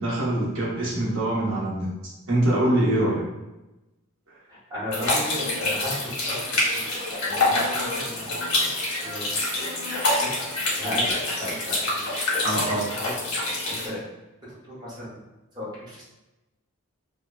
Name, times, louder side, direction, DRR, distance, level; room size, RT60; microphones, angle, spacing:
voice 1, 0.0-1.9 2.3-3.2 12.4-12.8, right 1 dB, 60° right, -7 dB, 0.8 m, -24 dB
voice 2, 4.5-9.3 9.8-10.5 10.8-13.2 13.6-14.0 14.4-15.2 15.5-16.0, left 1 dB, 20° right, -9 dB, 0.7 m, -35 dB
sound 1, 4.9-13.9, left 2 dB, 80° left, 0.9 m, -26 dB
2.8 x 2.1 x 2.3 m, 1.0 s
head